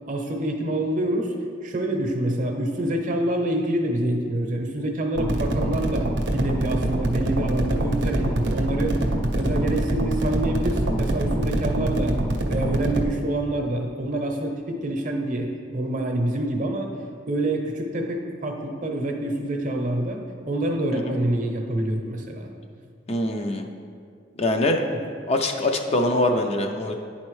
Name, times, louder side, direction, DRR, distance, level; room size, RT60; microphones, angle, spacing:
voice 1, 0.1-1.3 1.6-9.0 9.3-12.2 12.5-16.9 17.3-22.5 24.9-25.0, right 1 dB, 45° right, 2 dB, 0.8 m, -26 dB
sound 1, 5.2-13.1, right 1 dB, 80° right, 0.6 m, -25 dB
voice 2, 23.1-23.7 24.4-24.8 25.3-26.9, left 1 dB, 35° left, 4 dB, 0.4 m, -23 dB
10.5 x 4.2 x 3.1 m, 2.2 s
head